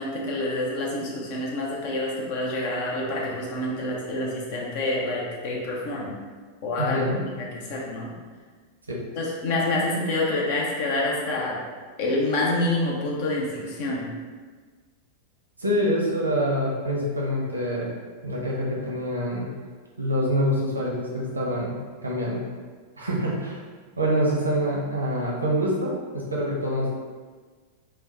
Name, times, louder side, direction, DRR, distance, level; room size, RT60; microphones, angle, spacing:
voice 1, 0.0-6.2 6.6-7.1 7.3-8.1 9.2-11.6 12.0-14.1, left 2 dB, 50° left, -3 dB, 0.8 m, -27 dB
voice 2, 6.8-7.2 8.9-9.0 15.6-17.9 18.2-19.5 20.0-21.7 22.0-22.4 23.0-23.6 24.0-26.9, equal, 80° right, -3 dB, 0.8 m, -26 dB
3.3 x 2.3 x 4.0 m, 1.5 s
figure-of-eight pair, 90°, 0 cm